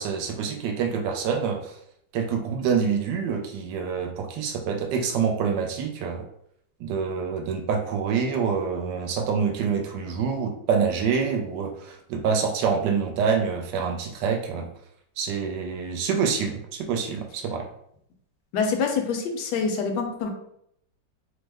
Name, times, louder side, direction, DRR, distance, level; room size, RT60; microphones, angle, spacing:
voice 1, 0.0-1.8 2.1-6.2 6.8-14.7 15.2-17.7, right 6 dB, 75° right, 3 dB, 1.2 m, -26 dB
voice 2, 18.5-20.3, left 5 dB, 75° left, 3 dB, 1.1 m, -26 dB
3.2 x 2.0 x 3.3 m, 0.72 s
omnidirectional pair, 2.0 m